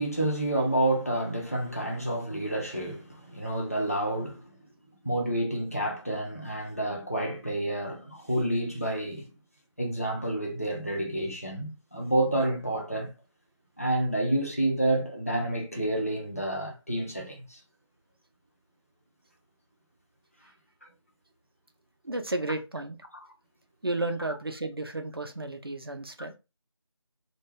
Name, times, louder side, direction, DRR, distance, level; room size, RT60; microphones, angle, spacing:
voice 1, 0.0-4.4 5.0-9.3 9.8-13.1 13.8-17.6, right 1 dB, 30° left, 0.4 m, -29 dB
voice 2, 22.0-23.0 23.8-26.3, right 2 dB, 50° right, 0.5 m, -32 dB
2.2 x 2.1 x 3.1 m
figure-of-eight pair, 170°, 16 cm